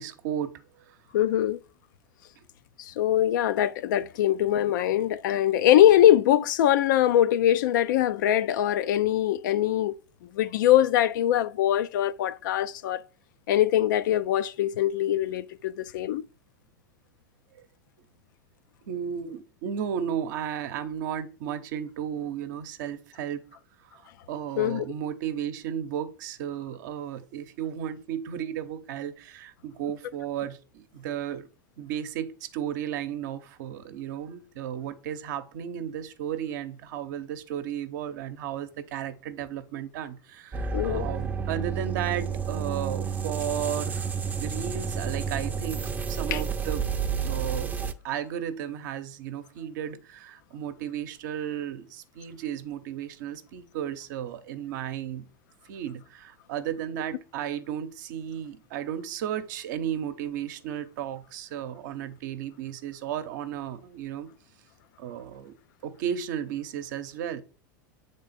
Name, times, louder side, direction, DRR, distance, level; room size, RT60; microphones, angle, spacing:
voice 1, 0.0-1.0 18.9-23.4 23.8-24.0 24.3-31.5 31.8-44.1 44.4-46.8 47.2-55.3 55.7-64.3 65.0-65.6 65.8-67.4, right 9 dB, 65° right, 0.8 m, -34 dB
voice 2, 1.1-1.6 2.8-10.0 10.2-13.0 13.5-16.2 24.6-24.8 40.7-41.1 46.3-46.4, left 12 dB, 65° left, 0.5 m, -22 dB
sound 1, 40.5-47.9, right 6 dB, 15° right, 0.6 m, -30 dB
7.8 x 3.6 x 4.1 m
hypercardioid pair, 95°, 11 cm